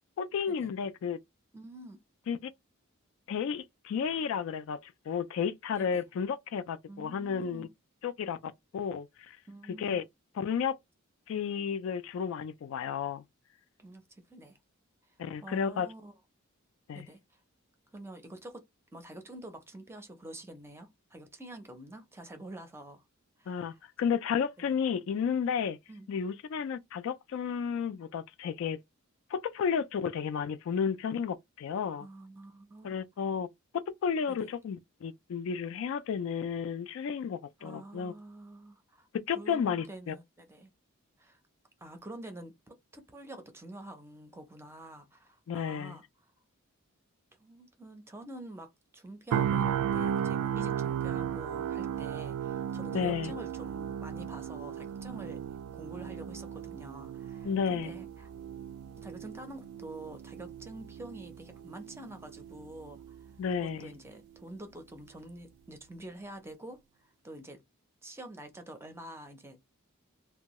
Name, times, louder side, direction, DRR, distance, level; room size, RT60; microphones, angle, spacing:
voice 1, 0.2-1.2 2.3-2.5 3.3-7.7 8.0-9.4 9.8-10.0 10.4-10.7 11.3-13.2 15.2-15.9 16.9-17.1 23.5-25.8 26.1-28.8 29.3-32.1 32.8-33.5 34.0-38.1 39.3-40.2 45.5-46.0 52.9-53.3 57.4-57.9 63.4-63.9, left 7 dB, 65° left, 0.3 m, -32 dB
voice 2, 1.5-2.0 5.7-6.0 6.9-7.7 9.5-10.0 13.8-14.6 15.0-15.1 15.4-16.1 16.9-17.4 17.9-18.6 18.9-23.0 23.4-23.8 25.9-26.1 32.0-33.0 34.3-34.5 37.6-39.1 39.3-40.7 41.2-41.4 41.8-46.0 47.4-55.4 55.7-58.3 59.0-63.3 63.6-67.6 68.0-69.6, right 1 dB, 10° right, 0.5 m, -47 dB
sound 1, 49.3-63.3 63.7-63.9, right 9 dB, 85° right, 0.3 m, -35 dB
2.6 x 2.2 x 3.0 m
head